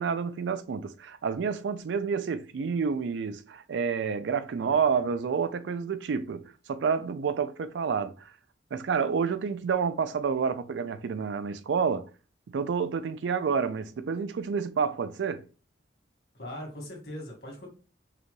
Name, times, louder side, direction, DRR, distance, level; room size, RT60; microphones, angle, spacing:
voice 1, 0.0-6.4 6.7-8.3 8.7-12.1 12.5-15.4, right 6 dB, 80° right, 0.4 m, -29 dB
voice 2, 4.6-5.1 16.3-17.7, left 1 dB, 60° left, 1.7 m, -41 dB
4.8 x 2.3 x 3.2 m
head